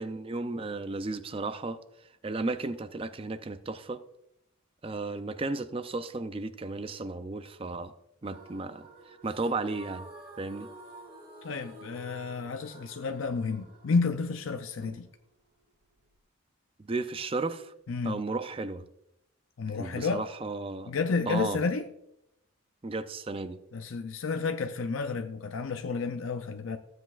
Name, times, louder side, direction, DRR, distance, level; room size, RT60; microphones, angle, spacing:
voice 1, 0.0-1.8 2.2-4.0 4.8-7.9 8.2-10.1 10.4-10.7 14.8-15.0 16.9-17.7 18.0-18.8 19.8-20.9 21.3-21.6 22.8-23.6, right 3 dB, 25° right, 0.4 m, -34 dB
sound 1, 8.2-16.2, right 2 dB, 45° right, 2.0 m, -50 dB
voice 2, 11.4-15.1 17.9-18.2 19.6-20.2 20.9-21.9 23.7-26.8, left 4 dB, 70° left, 0.5 m, -31 dB
14.5 x 7.9 x 2.4 m
head